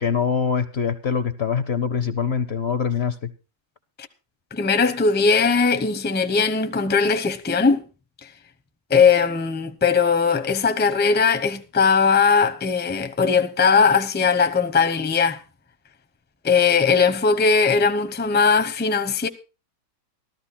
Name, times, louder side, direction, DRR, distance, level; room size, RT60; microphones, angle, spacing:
voice 1, 0.0-3.3, left 6 dB, 50° left, 0.8 m, -24 dB
voice 2, 4.5-7.8 8.2-8.3 8.9-15.4 16.4-19.3, left 5 dB, 10° left, 0.6 m, -19 dB
13.5 x 13.5 x 4.2 m
omnidirectional pair, 1.7 m